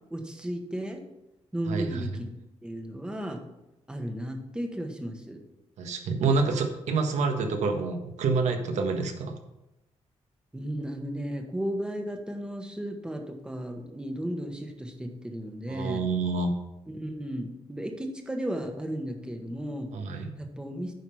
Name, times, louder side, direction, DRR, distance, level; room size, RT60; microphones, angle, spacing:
voice 1, 0.1-1.0 1.5-2.3 2.6-3.4 3.9-5.4 10.5-16.0 16.9-19.9 20.4-20.9, right 1 dB, 5° right, 3 dB, 1.2 m, -34 dB
voice 2, 1.7-2.1 5.8-9.4 15.7-16.6 19.9-20.3, right 4 dB, 80° right, 5 dB, 1.5 m, -27 dB
9.5 x 5.7 x 5.7 m, 0.91 s
wide cardioid pair, 160°, 12 cm